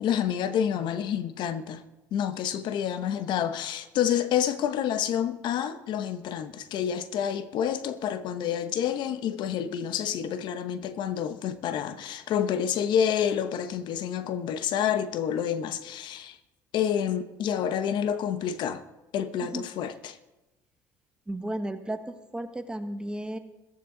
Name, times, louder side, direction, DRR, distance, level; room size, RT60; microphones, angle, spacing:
voice 1, 0.0-1.8 2.1-16.4 16.7-18.8 19.1-20.2, left 9 dB, 65° left, 0.9 m, -28 dB
voice 2, 21.3-23.4, right 1 dB, 10° right, 1.4 m, -34 dB
14.5 x 14.0 x 3.8 m
supercardioid pair, 80°, 8 cm